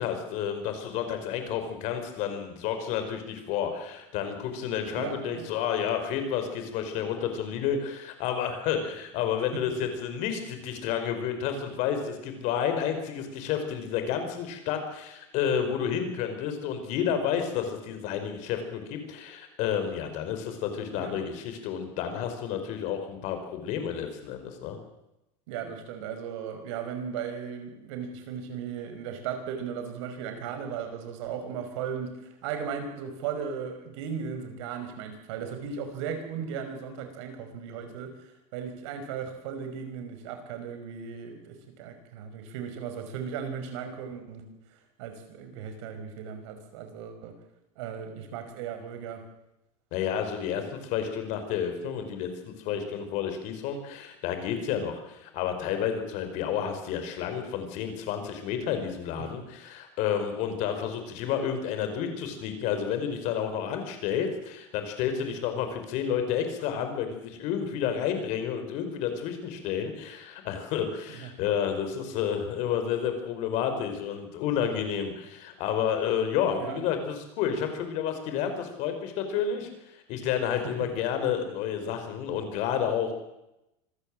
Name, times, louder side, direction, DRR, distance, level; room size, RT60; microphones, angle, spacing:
voice 1, 0.0-24.8 49.9-83.1, left 8 dB, 50° left, 7 dB, 4.8 m, -30 dB
voice 2, 5.0-5.5 9.5-9.6 20.9-21.3 25.5-47.4 47.8-49.3 59.2-59.3 71.1-71.3 76.6-76.9, right 7 dB, 70° right, 7 dB, 5.4 m, -37 dB
25.5 x 15.0 x 7.6 m, 0.89 s
supercardioid pair, 160°, 16 cm